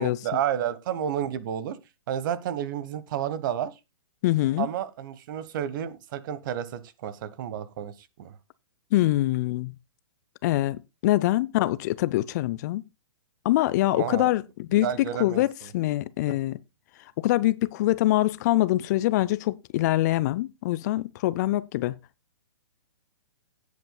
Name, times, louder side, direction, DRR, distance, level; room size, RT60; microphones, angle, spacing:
voice 1, 0.0-1.8 2.1-3.7 4.6-7.9 8.2-8.3 13.9-14.3 14.8-15.4 16.3-16.4, right 10 dB, 45° right, 1.2 m, -31 dB
voice 2, 4.2-4.7 8.9-9.7 10.4-12.8 13.4-16.6 17.2-22.0, left 16 dB, 35° left, 0.5 m, -24 dB
17.0 x 8.4 x 2.3 m
figure-of-eight pair, 120°, 15 cm